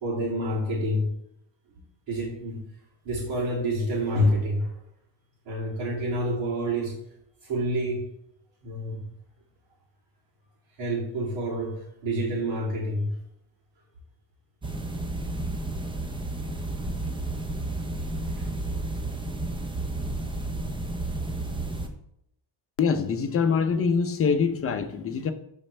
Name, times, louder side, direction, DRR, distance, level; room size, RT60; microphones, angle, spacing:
voice 1, 0.0-1.1 1.7-1.8 2.1-2.6 3.0-4.7 5.5-6.9 7.4-8.0 8.6-9.0 10.8-13.1 15.2-15.3 17.9-18.5, equal, 80° right, -9 dB, 2.9 m, -28 dB
sound 1, 14.6-21.9, right 2 dB, 10° right, 0.5 m, -32 dB
voice 2, 22.8-25.3, left 5 dB, 30° left, 7 dB, 0.7 m, -24 dB
11.5 x 4.4 x 3.3 m, 0.78 s
cardioid pair, 155°, 46 cm